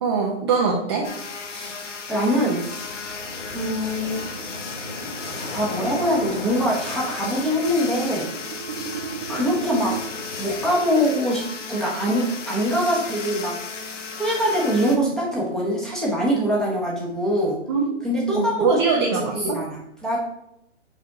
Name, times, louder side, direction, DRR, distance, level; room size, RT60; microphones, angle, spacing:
voice 1, 0.0-1.1 17.7-17.8 18.3-19.6, right 5 dB, 20° right, -2 dB, 0.5 m, -22 dB
sound 1, 1.0-15.0, left 5 dB, 80° left, 1.1 m, -35 dB
voice 2, 2.1-2.6 3.5-4.2 5.3-8.3 9.3-9.9 10.4-13.6 14.1-17.6 18.0-20.2, equal, ahead, -5 dB, 0.9 m, -23 dB
sound 2, 2.5-10.7, left 1 dB, 60° left, 2.0 m, -38 dB
sound 3, 5.3-10.0, right 8 dB, 45° right, 1.0 m, -37 dB
5.0 x 4.4 x 4.7 m, 0.79 s
hypercardioid pair, 150°, 36 cm